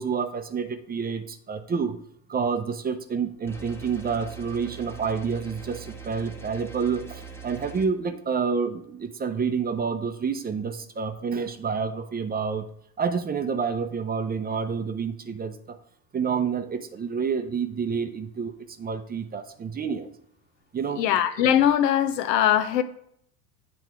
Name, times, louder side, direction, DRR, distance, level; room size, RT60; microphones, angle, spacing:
voice 1, 0.0-2.0 2.3-12.7 13.0-15.8 16.1-20.1 20.7-21.0, right 6 dB, 20° right, 0.5 m, -28 dB
sound 1, 3.5-7.9, right 5 dB, 5° left, 0.9 m, -42 dB
voice 2, 21.0-22.8, left 10 dB, 80° left, 0.7 m, -21 dB
8.4 x 3.4 x 4.5 m
hypercardioid pair, 80°, 48 cm